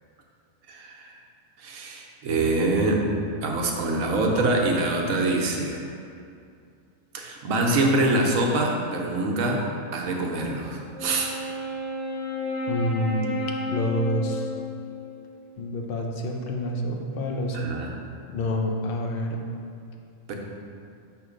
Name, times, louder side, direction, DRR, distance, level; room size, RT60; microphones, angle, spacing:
voice 1, 0.7-1.2 1.6-3.1 3.4-5.9 7.1-9.7 9.9-11.3 17.5-17.9 20.3-20.4, right 2 dB, 80° right, 0 dB, 1.1 m, -25 dB
Wind instrument woodwind instrument, 10.9-15.5, left 1 dB, 40° left, 1.8 m, -32 dB
voice 2, 12.7-13.4 13.7-14.5 15.6-17.6 18.3-19.4, left 1 dB, 55° left, 1 dB, 0.7 m, -27 dB
5.9 x 3.2 x 5.0 m, 2.4 s
omnidirectional pair, 1.4 m